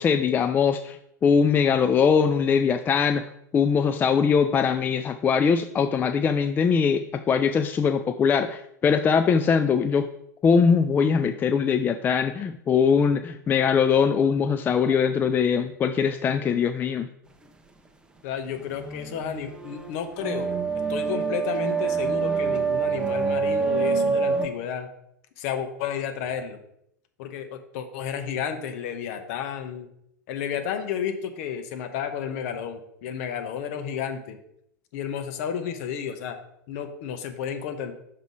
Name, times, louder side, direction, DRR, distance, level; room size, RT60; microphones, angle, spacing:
voice 1, 0.0-3.2 3.5-10.1 10.4-17.1, left 6 dB, 20° left, 8 dB, 0.4 m, -22 dB
voice 2, 18.2-20.5 20.9-24.9 25.4-26.6 27.2-29.9 30.3-34.4 34.9-36.4 36.7-37.9, left 8 dB, 50° left, 7 dB, 1.1 m, -32 dB
sound 1, 18.6-24.5, right 5 dB, 10° right, 0.8 m, -26 dB
5.8 x 5.3 x 4.7 m, 0.74 s
figure-of-eight pair, 90°, 10 cm